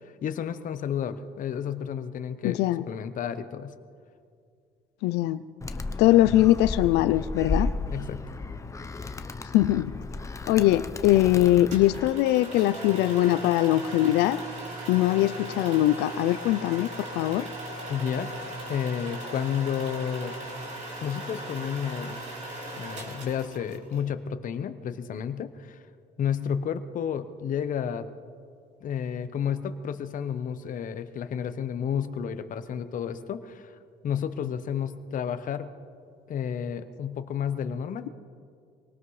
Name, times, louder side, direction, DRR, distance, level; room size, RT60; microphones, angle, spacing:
voice 1, 0.2-3.7 7.9-8.2 17.9-18.3 18.7-20.3 21.0-22.3 22.8-25.8 26.2-28.1 28.8-33.8 34.0-35.7 36.3-38.1, left 8 dB, 50° left, 10 dB, 0.9 m, -31 dB
voice 2, 2.4-2.9 5.0-5.4 6.0-7.7 9.5-9.9 10.5-14.4 14.9-17.5, left 14 dB, 85° left, 14 dB, 0.4 m, -22 dB
Animal, 5.6-12.1, left 3 dB, 20° left, 0.7 m, -34 dB
sound 1, 11.7-24.0, right 1 dB, 45° right, 3.6 m, -38 dB
24.0 x 18.5 x 3.2 m, 2.3 s
cardioid pair, 110°, 17 cm